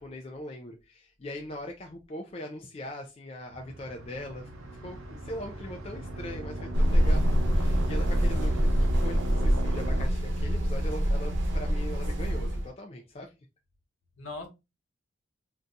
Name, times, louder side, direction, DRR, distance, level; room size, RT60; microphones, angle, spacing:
voice 1, 0.0-7.2 7.5-8.7 9.0-13.3, left 1 dB, 30° left, 0.4 m, -41 dB
sound 1, 3.5-10.1, right 1 dB, 90° right, 0.7 m, -38 dB
sound 2, 6.7-12.7, equal, 60° right, 0.9 m, -25 dB
voice 2, 8.4-8.9 9.6-9.7 14.2-14.5, left 2 dB, 80° left, 1.0 m, -42 dB
2.7 x 2.3 x 3.7 m
head